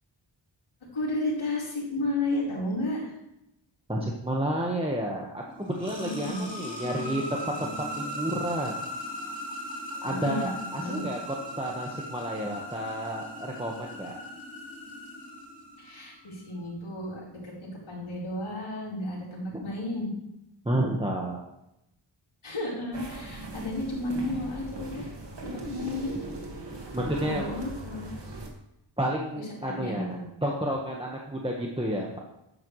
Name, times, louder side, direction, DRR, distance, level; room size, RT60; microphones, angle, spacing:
voice 1, 0.9-3.1 6.0-6.4 10.0-10.5 10.7-11.0 15.8-17.5 17.9-20.1 22.4-25.1 25.4-26.1 27.2-28.1 29.3-30.2, left 1 dB, 85° left, -6 dB, 4.5 m, -32 dB
voice 2, 3.9-7.4 7.9-8.8 10.0-11.2 11.6-14.2 19.5-19.6 20.6-21.4 26.9-27.6 29.0-32.2, right 1 dB, 10° right, -2 dB, 1.5 m, -31 dB
sound 1, 5.4-16.2, equal, 15° left, 3.0 m, -38 dB
sound 2, 22.9-28.5, right 2 dB, 60° right, 2.0 m, -39 dB
12.0 x 9.6 x 3.3 m, 0.85 s
wide cardioid pair, 85°, 48 cm